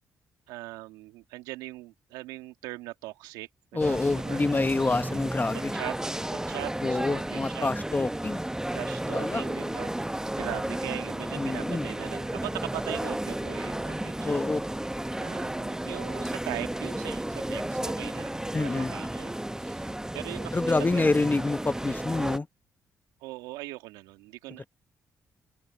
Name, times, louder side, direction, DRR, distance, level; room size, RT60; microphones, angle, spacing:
voice 1, 0.5-4.4 5.5-5.9 6.3-7.7 8.7-10.0 10.3-14.4 15.2-19.9 20.1-21.2 23.2-24.7, right 19 dB, 85° right, 2.3 m, -40 dB
voice 2, 3.7-5.7 6.8-8.4 9.1-9.4 11.4-11.9 14.2-14.6 18.5-18.9 20.5-22.5 24.6-24.7, left 3 dB, 25° left, 1.3 m, -27 dB
sound 1, 3.8-22.4, right 1 dB, 10° right, 0.9 m, -33 dB
open air
hypercardioid pair, 45°, 7 cm